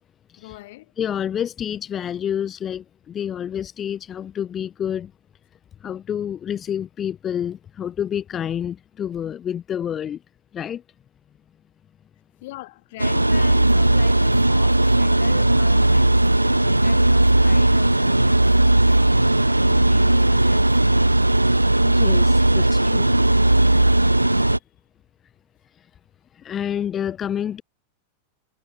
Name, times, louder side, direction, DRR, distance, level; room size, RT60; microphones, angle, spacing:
voice 1, 0.4-0.9 12.4-21.1 24.5-24.6, left 19 dB, 50° left, 4.7 m, -41 dB
voice 2, 1.0-5.1 5.8-10.2 10.5-10.8 21.8-23.1 26.3-27.6, left 9 dB, 25° left, 1.8 m, -28 dB
sound 1, 13.0-24.6, right 1 dB, 85° right, 1.3 m, -17 dB
figure-of-eight pair, 90°, 0 cm